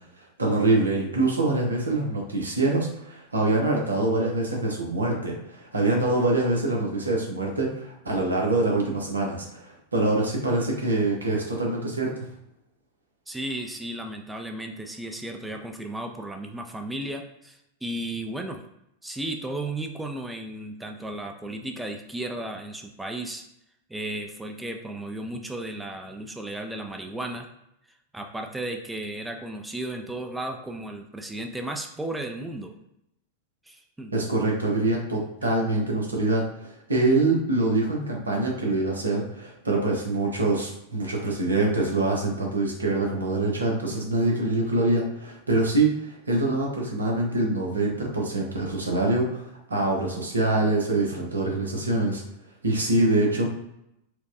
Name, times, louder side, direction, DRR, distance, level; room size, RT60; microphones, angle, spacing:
voice 1, 0.4-12.2 34.1-52.2 52.6-53.5, right 2 dB, 75° right, -1 dB, 0.9 m, -25 dB
voice 2, 13.3-18.6 19.0-23.4 23.9-27.5 28.1-32.7 33.7-34.1, right 1 dB, 5° right, 3 dB, 0.4 m, -34 dB
4.4 x 2.2 x 2.6 m, 0.81 s
figure-of-eight pair, 90°, 0 cm